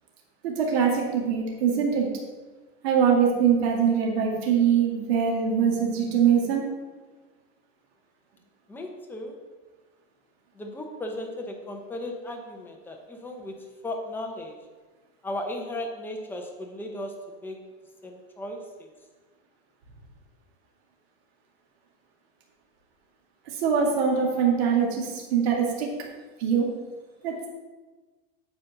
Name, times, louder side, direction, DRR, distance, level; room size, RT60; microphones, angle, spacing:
voice 1, 0.4-2.1 2.8-6.6 23.6-25.9 26.4-26.7 27.2-27.5, right 7 dB, 80° right, -1 dB, 2.2 m, -23 dB
voice 2, 8.7-9.3 10.6-14.6 15.2-17.6 18.0-18.9, left 1 dB, 5° left, 1 dB, 0.9 m, -36 dB
8.9 x 4.3 x 6.7 m, 1.3 s
supercardioid pair, 150°, 31 cm